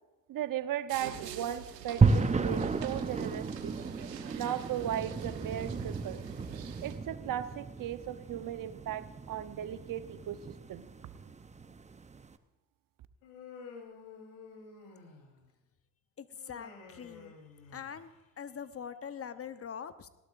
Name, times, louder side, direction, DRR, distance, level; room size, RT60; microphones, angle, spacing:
voice 1, 0.3-3.8 4.3-6.2 6.8-10.4 10.7-10.9, right 11 dB, 45° right, 12 dB, 1.0 m, -37 dB
sound 1, 0.9-7.0, right 8 dB, 90° right, 1.3 m, -46 dB
sound 2, 2.0-12.3, right 4 dB, 15° right, 0.8 m, -33 dB
Human voice, 13.2-15.5 16.4-18.2, left 5 dB, 65° left, 4.1 m, -51 dB
voice 2, 16.2-17.4 17.7-18.1 18.4-20.1, left 7 dB, 30° left, 12 dB, 1.0 m, -43 dB
19.5 x 17.0 x 2.6 m, 1.1 s
hypercardioid pair, 70°, 48 cm